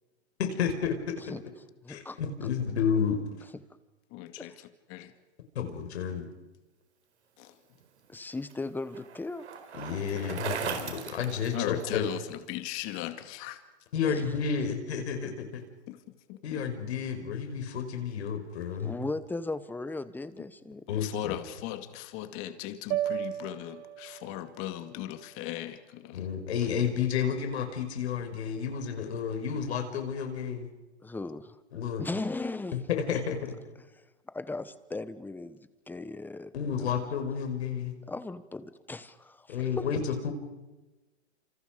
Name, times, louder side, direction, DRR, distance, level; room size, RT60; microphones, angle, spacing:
voice 1, 0.4-1.1 1.9-3.2 5.5-6.3 9.7-12.0 13.9-15.6 16.4-18.9 20.9-21.4 26.1-30.7 31.7-32.0 32.9-33.6 36.5-37.9 39.5-40.3, left 7 dB, 75° left, 5 dB, 5.6 m, -31 dB
voice 2, 1.8-2.2 4.4-4.5 8.1-9.4 14.0-14.2 18.8-20.9 31.0-31.6 32.0-32.7 33.9-36.5 36.8-36.9 38.1-39.9, left 3 dB, 5° left, 14 dB, 1.1 m, -37 dB
voice 3, 4.1-5.1 7.4-7.6 11.5-13.6 15.9-16.0 16.3-16.6 20.9-26.3, left 13 dB, 40° left, 9 dB, 2.2 m, -38 dB
Bicycle, 7.8-12.2, right 7 dB, 80° right, 4.6 m, -39 dB
sound 1, 22.9-27.2, right 12 dB, 35° right, 1.1 m, -37 dB
28.5 x 27.5 x 5.3 m, 1.1 s
hypercardioid pair, 135°, 33 cm